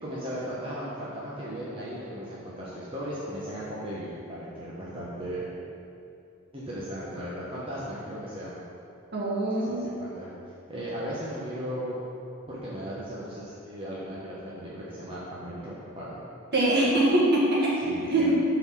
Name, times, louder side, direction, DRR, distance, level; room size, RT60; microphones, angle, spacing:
voice 1, 0.0-5.5 6.5-8.6 9.6-10.3 10.7-12.0 12.5-16.2 17.8-18.3, equal, 25° right, -8 dB, 1.0 m, -36 dB
voice 2, 9.1-9.9 16.5-18.3, right 1 dB, 50° right, -6 dB, 1.7 m, -23 dB
7.7 x 4.1 x 5.7 m, 2.6 s
head